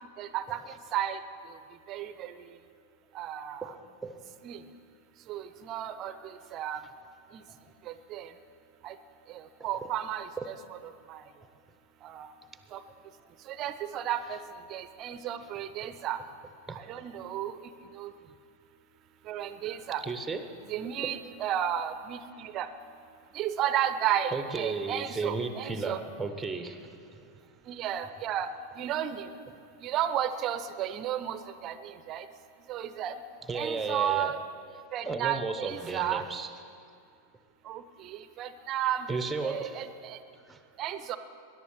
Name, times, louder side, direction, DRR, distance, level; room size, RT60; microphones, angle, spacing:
voice 1, 0.2-0.6 0.9-1.2 1.9-2.3 3.1-3.7 4.4-4.6 5.3-6.1 6.5-6.8 7.3-7.4 8.1-8.3 8.8-8.9 9.3-10.5 11.1-11.2 12.0-12.3 12.7-12.8 13.5-14.4 14.7-16.2 16.7-17.5 18.0-18.1 19.3-20.0 20.7-22.7 23.3-26.0 27.7-28.5 28.8-29.3 29.8-32.2 32.7-33.2 33.5-34.4 34.9-36.2 37.7-39.1 39.4-40.2 40.8-41.2, right 10 dB, 35° right, 12 dB, 0.7 m, -33 dB
voice 2, 5.9-6.3 7.5-7.7 9.6-9.9 10.4-10.5 13.2-13.3 15.4-15.5 15.8-15.9 16.7-16.8 19.6-20.4 24.3-27.0 33.4-34.4 35.0-36.5 39.1-39.8 40.4-40.6, right 4 dB, 10° right, 9 dB, 0.9 m, -35 dB
21.0 x 11.0 x 4.6 m, 2.5 s
figure-of-eight pair, 90°, 0 cm